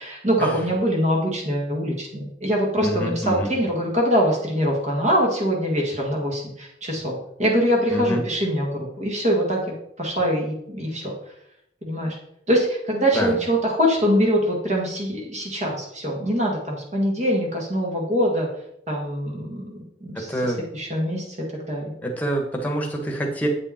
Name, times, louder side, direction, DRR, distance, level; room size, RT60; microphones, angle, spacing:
voice 1, 0.0-9.6 10.0-11.3 11.8-12.2 12.5-18.5 18.9-20.3 20.7-21.9, equal, 40° right, -1 dB, 1.7 m, -23 dB
voice 2, 2.8-3.5 7.9-8.2 13.1-13.3 20.1-20.6 22.0-23.5, right 1 dB, 10° left, 2 dB, 1.3 m, -26 dB
8.6 x 5.2 x 4.3 m, 0.76 s
head